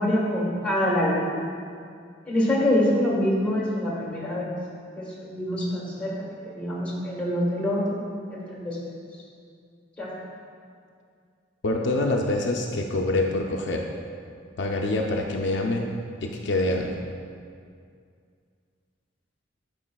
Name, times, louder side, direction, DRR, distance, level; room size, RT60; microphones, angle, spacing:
voice 1, 0.0-1.3 2.2-4.5 5.0-6.1 6.4-8.0 8.3-8.8 10.0-10.1, left 1 dB, 5° left, -6 dB, 1.4 m, -25 dB
voice 2, 11.6-13.8 14.6-15.9 16.2-16.9, left 2 dB, 65° left, 1 dB, 0.5 m, -25 dB
11.0 x 4.9 x 2.3 m, 2.2 s
head